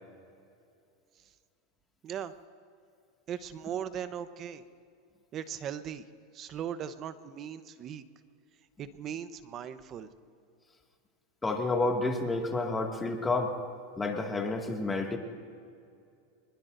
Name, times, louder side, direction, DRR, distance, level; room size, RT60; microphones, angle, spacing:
voice 1, 2.0-2.3 3.3-4.6 5.3-6.0 6.3-8.0 8.8-10.1, right 9 dB, 40° right, 11 dB, 0.9 m, -38 dB
voice 2, 11.4-13.5 14.0-15.2, left 2 dB, 15° left, 2 dB, 2.1 m, -30 dB
25.0 x 21.0 x 2.7 m, 2.4 s
hypercardioid pair, 115°, 0 cm